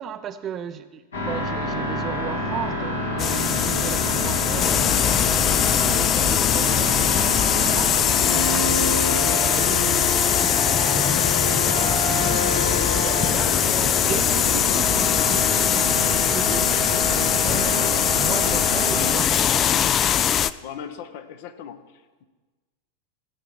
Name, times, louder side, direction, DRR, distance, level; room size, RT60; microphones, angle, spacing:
voice 1, 0.0-5.3 5.8-12.4 12.9-13.6 14.0-19.9, right 8 dB, 30° right, 0.5 m, -36 dB
sound 1, 1.1-19.1, left 1 dB, 70° left, 2.2 m, -28 dB
sound 2, 3.2-20.5, left 9 dB, 30° left, 0.3 m, -21 dB
voice 2, 20.6-21.8, left 8 dB, 50° left, 0.9 m, -37 dB
16.5 x 5.8 x 4.7 m
figure-of-eight pair, 90°, 0 cm